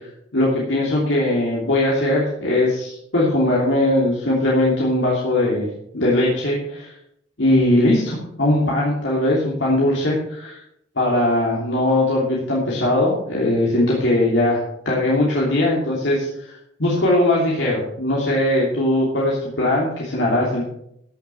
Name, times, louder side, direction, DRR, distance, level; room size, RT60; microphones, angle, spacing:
voice 1, 0.3-5.7 5.9-6.9 7.4-10.6 11.0-20.6, left 1 dB, 90° left, -5 dB, 3.0 m, -20 dB
15.5 x 6.6 x 5.8 m, 0.75 s
head